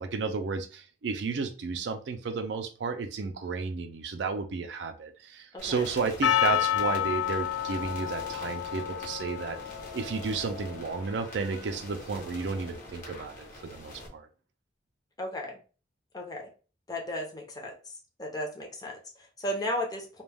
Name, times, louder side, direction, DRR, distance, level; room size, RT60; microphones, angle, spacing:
voice 1, 0.0-9.6 9.9-14.3, right 4 dB, 75° right, 7 dB, 0.4 m, -33 dB
voice 2, 5.5-5.9 15.2-15.6 16.1-16.5 16.9-17.7 18.2-20.2, left 1 dB, 20° left, 0 dB, 0.6 m, -35 dB
sound 1, 5.6-14.1, left 1 dB, 50° left, 0.8 m, -45 dB
Percussion, 6.2-11.2, left 11 dB, 65° left, 0.3 m, -30 dB
2.2 x 2.2 x 3.3 m, 0.36 s
head